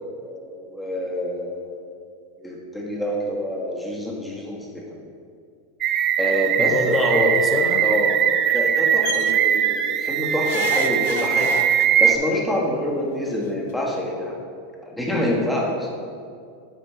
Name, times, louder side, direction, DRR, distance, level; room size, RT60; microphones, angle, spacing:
voice 1, 0.0-1.8 2.4-4.8 6.2-7.3 7.8-8.1 8.5-11.5 12.0-14.4 14.8-15.9, equal, 5° left, -3 dB, 1.4 m, -26 dB
sound 1, 5.8-12.2, right 9 dB, 40° right, 0.3 m, -21 dB
voice 2, 6.6-7.9, left 2 dB, 25° left, 3 dB, 0.8 m, -26 dB
sound 2, 9.0-9.3 10.4-12.1 13.3-13.4 13.7-13.8, left 8 dB, 70° left, 0.5 m, -31 dB
7.9 x 5.2 x 3.3 m, 2.3 s
hypercardioid pair, 110°, 0 cm